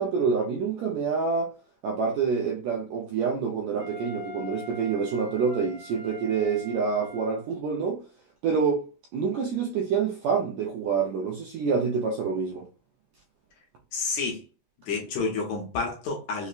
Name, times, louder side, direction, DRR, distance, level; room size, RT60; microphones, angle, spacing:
voice 1, 0.0-1.5 1.8-8.0 8.4-8.8 9.1-12.7, right 5 dB, 85° right, 1.6 m, -27 dB
Wind instrument woodwind instrument, 3.8-7.5, left 2 dB, 15° left, 0.8 m, -43 dB
voice 2, 13.9-14.4 14.9-16.5, left 4 dB, 70° left, 1.9 m, -29 dB
5.4 x 2.1 x 2.3 m
omnidirectional pair, 3.7 m